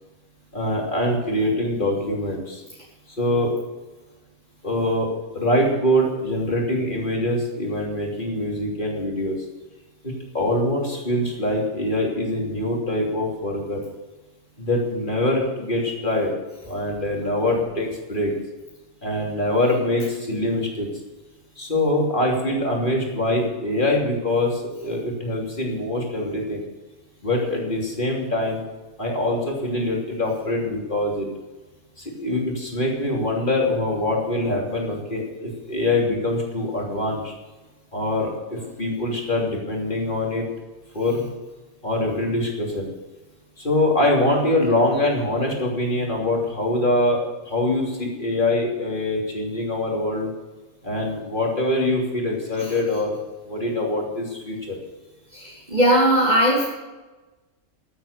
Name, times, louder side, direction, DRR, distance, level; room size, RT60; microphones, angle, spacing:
voice 1, 0.5-2.6 3.2-3.5 4.6-9.4 10.0-13.8 14.6-16.3 16.7-18.3 19.0-20.9 21.6-26.6 27.2-28.6 29.0-31.3 32.0-37.3 37.9-40.4 40.9-41.3 41.8-42.9 43.6-47.2 47.4-50.3 50.8-53.2 53.4-54.7, left 1 dB, 35° left, -1 dB, 3.2 m, -24 dB
voice 2, 55.3-56.7, equal, 30° right, -6 dB, 3.2 m, -19 dB
14.0 x 8.8 x 6.7 m, 1.2 s
omnidirectional pair, 1.4 m